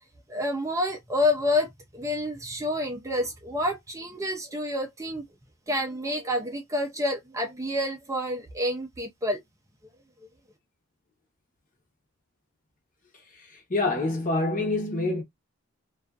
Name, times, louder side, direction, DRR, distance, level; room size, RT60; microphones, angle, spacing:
voice 1, 0.3-1.7 1.9-5.2 5.7-9.4, left 1 dB, 15° right, 0.4 m, -28 dB
voice 2, 13.4-15.2, left 2 dB, 35° left, 0.8 m, -26 dB
2.4 x 2.3 x 2.3 m
head